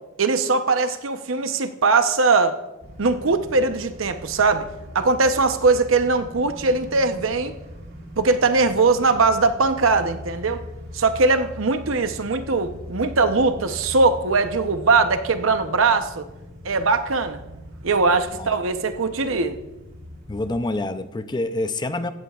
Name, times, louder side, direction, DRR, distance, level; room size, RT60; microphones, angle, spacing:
voice 1, 0.2-2.6 3.0-4.7 4.9-7.5 8.2-10.6 10.9-16.2 16.6-17.4 17.8-19.6, right 3 dB, 75° right, 0.8 m, -20 dB
sound 1, 2.8-20.6, equal, 55° right, 1.8 m, -40 dB
voice 2, 20.3-22.1, left 2 dB, 20° left, 0.5 m, -27 dB
16.5 x 13.5 x 2.4 m
head